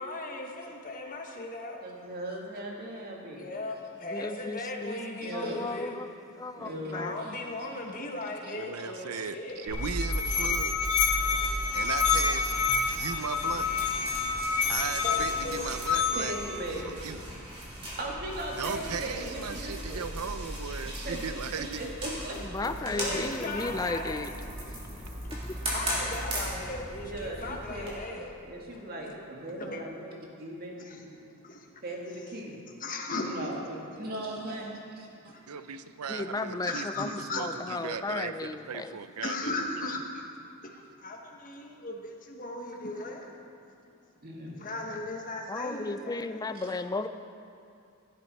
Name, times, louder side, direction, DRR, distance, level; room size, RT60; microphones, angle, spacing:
voice 1, 0.0-1.8 3.3-6.0 6.9-9.7 15.0-15.6 22.9-24.2 25.1-25.2 25.7-28.3 28.7-29.2 29.5-29.8 30.8-31.8 32.8-33.3 35.2-35.5 36.7-37.4 39.2-40.3 40.6-43.3 44.6-46.4, left 2 dB, 40° left, 1 dB, 1.3 m, -37 dB
voice 2, 1.8-3.5 4.3-4.4 5.2-5.8 6.6-7.4 8.4-8.9 10.3-10.4 16.1-17.2 18.0-20.0 20.8-21.2 21.8-22.4 27.0-28.0 28.5-30.1 30.4-31.0 31.8-32.6 33.1-35.3 44.2-44.6 46.5-46.6, right 1 dB, 45° right, -2 dB, 2.0 m, -38 dB
voice 3, 4.0-6.1 6.4-7.2 22.4-24.3 24.6-24.8 25.3-25.6 36.1-39.0 45.5-47.1, left 3 dB, 15° left, 10 dB, 0.4 m, -35 dB
voice 4, 8.5-10.7 11.7-12.6 12.8-13.7 14.7-16.4 16.8-17.2 18.6-21.8 22.6-22.8 23.1-23.2 35.5-39.6 39.8-40.0, right 6 dB, 85° right, 11 dB, 0.6 m, -37 dB
Musical instrument, 9.5-16.5, left 6 dB, 85° left, 1.6 m, -28 dB
sound 1, 9.7-27.9, equal, 25° right, 3.2 m, -37 dB
16.0 x 10.5 x 4.3 m, 2.5 s
head